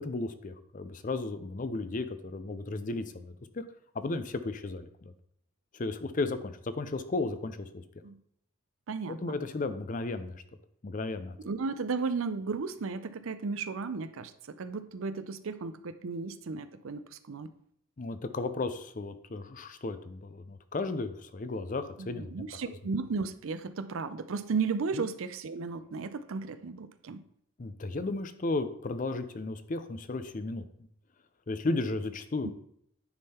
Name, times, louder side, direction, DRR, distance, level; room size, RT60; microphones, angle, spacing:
voice 1, 0.0-3.6 4.0-5.1 5.7-7.8 9.1-10.4 10.8-11.4 18.0-22.3 25.0-25.1 27.6-30.6 31.5-32.5, left 3 dB, 35° left, 11 dB, 0.5 m, -34 dB
voice 2, 8.9-9.4 11.4-14.3 14.6-17.5 22.0-27.2 32.4-32.5, right 4 dB, 70° right, 12 dB, 0.5 m, -34 dB
9.6 x 3.7 x 4.2 m, 0.70 s
head